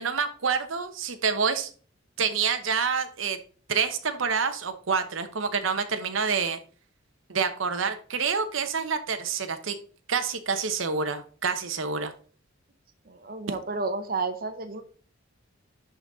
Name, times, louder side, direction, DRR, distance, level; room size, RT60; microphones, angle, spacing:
voice 1, 0.0-1.7 2.2-3.4 3.7-6.6 7.3-9.7 10.1-12.1, right 5 dB, 80° right, 9 dB, 0.9 m, -27 dB
voice 2, 13.1-14.8, right 3 dB, 50° right, 8 dB, 0.9 m, -31 dB
11.0 x 4.0 x 4.0 m, 0.42 s
head